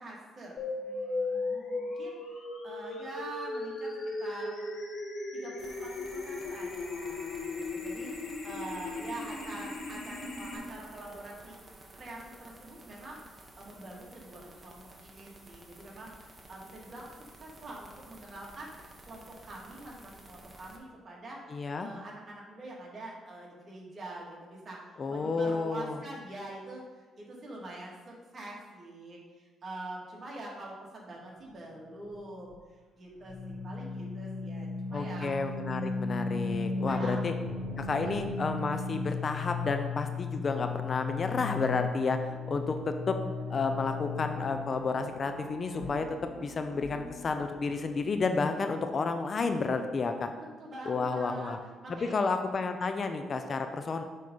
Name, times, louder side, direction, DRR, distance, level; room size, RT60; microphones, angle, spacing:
voice 1, 0.0-2.2 2.6-4.6 5.3-13.2 13.6-17.1 17.4-21.4 21.8-35.3 36.4-37.2 37.8-38.3 50.3-52.2, right 2 dB, 40° right, -3 dB, 2.1 m, -45 dB
sound 1, 0.6-10.6, left 2 dB, 65° left, 1.8 m, -37 dB
sound 2, 5.6-20.8, right 2 dB, 25° right, 1.2 m, -53 dB
voice 2, 21.5-21.9 25.0-26.0 34.9-37.3 37.8-43.2 43.5-50.3 50.9-51.6 52.0-54.0, left 4 dB, 40° left, 7 dB, 0.6 m, -31 dB
sound 3, 32.1-32.5 33.2-48.1, left 4 dB, 80° left, 1.9 m, -36 dB
7.6 x 3.8 x 5.4 m, 1.3 s
cardioid pair, 90°, 0 cm